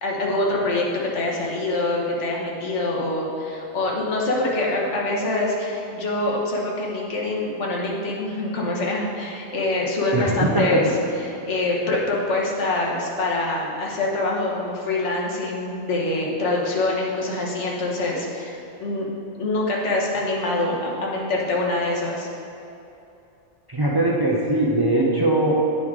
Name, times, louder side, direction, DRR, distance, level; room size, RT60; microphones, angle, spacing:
voice 1, 0.0-10.9 11.2-19.1 19.4-22.3, left 2 dB, 85° left, -3 dB, 1.4 m, -25 dB
voice 2, 10.1-10.8 23.7-25.5, right 1 dB, 35° right, -3 dB, 0.4 m, -20 dB
9.0 x 4.7 x 3.6 m, 2.7 s
omnidirectional pair, 1.2 m